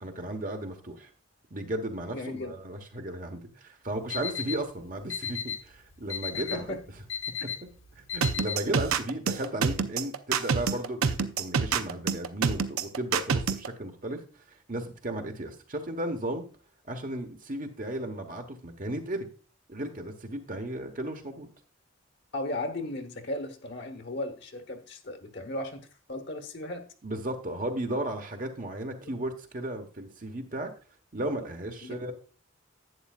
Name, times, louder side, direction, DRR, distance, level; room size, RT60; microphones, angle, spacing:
voice 1, 0.0-1.1 1.5-6.8 7.6-7.7 7.9-14.2 14.7-16.4 16.9-19.3 19.7-21.5 27.0-30.7 31.1-32.1, right 1 dB, 40° right, 5 dB, 1.2 m, -35 dB
voice 2, 2.1-2.5 6.3-6.8 22.3-26.8 31.8-32.1, left 1 dB, 55° left, 7 dB, 1.2 m, -36 dB
Alarm, 3.9-8.9, left 7 dB, 75° left, 1.5 m, -36 dB
sound 1, 8.2-13.7, right 5 dB, 80° right, 0.6 m, -26 dB
11.0 x 8.8 x 2.4 m, 0.37 s
head